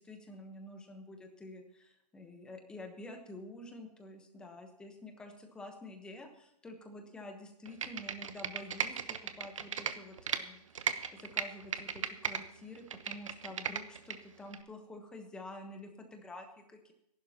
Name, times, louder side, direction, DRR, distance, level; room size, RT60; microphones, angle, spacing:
voice 1, 0.0-16.9, left 1 dB, 5° left, 4 dB, 1.1 m, -49 dB
Computer keyboard, 7.7-10.4 10.8-12.4 12.8-14.2 14.5-14.6, right 7 dB, 55° right, 1.0 m, -36 dB
25.0 x 11.5 x 2.9 m, 0.77 s
hypercardioid pair, 160°, 20 cm